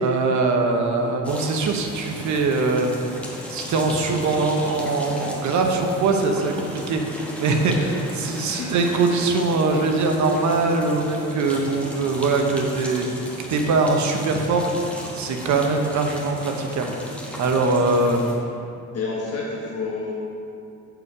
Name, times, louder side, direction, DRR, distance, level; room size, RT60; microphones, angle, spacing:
voice 1, 0.0-2.9 3.5-13.1 13.5-14.7 15.1-16.9 17.4-18.6, right 3 dB, 70° right, 3 dB, 1.0 m, -22 dB
sound 1, 1.2-18.3, left 1 dB, 5° left, 1.4 m, -36 dB
voice 2, 18.9-20.1, left 4 dB, 55° left, -4 dB, 1.3 m, -30 dB
8.3 x 4.9 x 4.9 m, 2.6 s
cardioid pair, 90°, 30 cm